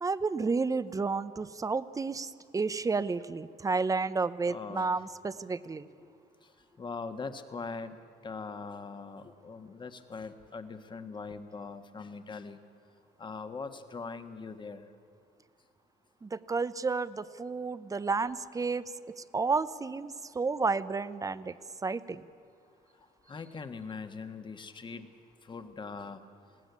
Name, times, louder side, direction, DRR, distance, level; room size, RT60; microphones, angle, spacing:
voice 1, 0.0-5.9 16.2-21.5 21.8-22.2, right 4 dB, 20° right, 15 dB, 0.7 m, -31 dB
voice 2, 4.5-4.9 6.0-6.1 6.7-7.9 8.2-12.6 13.2-14.9 23.3-25.1 25.4-26.2, left 4 dB, 30° left, 8 dB, 1.4 m, -41 dB
20.5 x 16.5 x 9.5 m, 2.5 s
cardioid pair, 110°, 17 cm